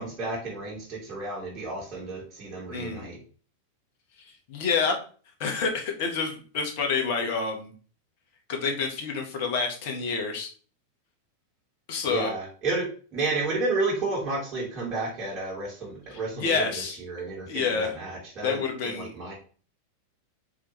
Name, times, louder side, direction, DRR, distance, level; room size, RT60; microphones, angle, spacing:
voice 1, 0.0-3.2 12.0-19.3, right 3 dB, 30° right, -6 dB, 1.5 m, -31 dB
voice 2, 2.7-3.1 4.5-5.0 5.4-7.7 8.5-10.5 11.9-12.3 16.1-17.0 17.4-18.0 18.4-19.1, left 5 dB, 50° left, 3 dB, 0.9 m, -28 dB
3.9 x 3.0 x 3.0 m, 0.40 s
figure-of-eight pair, 90°, 0 cm